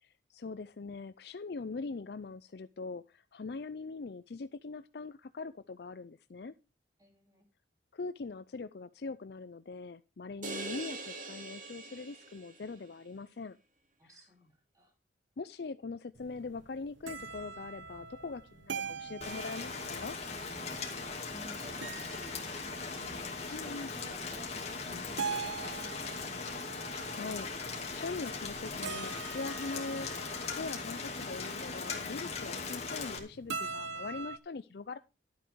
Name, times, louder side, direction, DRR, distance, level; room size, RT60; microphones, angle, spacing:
voice 1, 0.0-6.5 7.9-13.6 15.4-20.1 23.5-23.9 27.1-30.1 30.5-35.0, left 4 dB, 55° left, 14 dB, 0.5 m, -42 dB
voice 2, 7.0-7.5 14.0-14.9 21.3-26.4, left 1 dB, 20° right, 2 dB, 3.0 m, -53 dB
sound 1, 10.4-12.8, right 3 dB, 45° right, 2.0 m, -42 dB
sound 2, 16.2-34.4, right 5 dB, 80° right, 0.9 m, -44 dB
Rain, 19.2-33.2, left 4 dB, 35° left, 2.5 m, -39 dB
12.5 x 8.1 x 4.6 m, 0.29 s
head